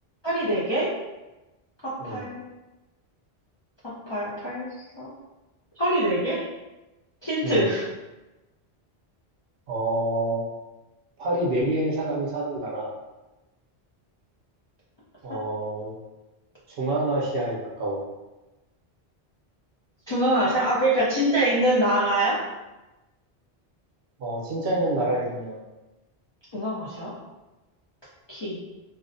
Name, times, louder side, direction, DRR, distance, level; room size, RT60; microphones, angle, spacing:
voice 1, 0.2-0.9 1.8-2.4 4.1-4.7 5.0-5.1 5.8-6.4 7.2-7.9 20.1-22.4 26.5-27.1 28.3-28.6, right 1 dB, 45° left, -10 dB, 0.3 m, -24 dB
voice 2, 9.7-10.4 11.2-12.9 15.2-15.9 16.8-18.0 24.2-25.6, right 1 dB, 65° right, -3 dB, 0.7 m, -27 dB
2.5 x 2.0 x 2.5 m, 1.1 s
omnidirectional pair, 1.1 m